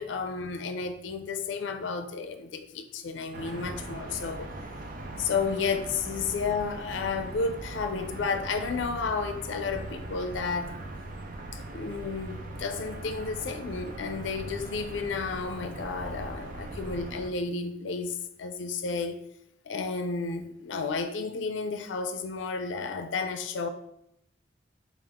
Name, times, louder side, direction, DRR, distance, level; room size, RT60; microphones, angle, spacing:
voice 1, 0.0-4.5 5.2-10.8 11.5-19.2 19.6-23.7, left 4 dB, 75° left, 0.4 m, -32 dB
sound 1, 3.3-17.3, right 2 dB, 50° right, 0.5 m, -40 dB
5.2 x 2.4 x 3.5 m
head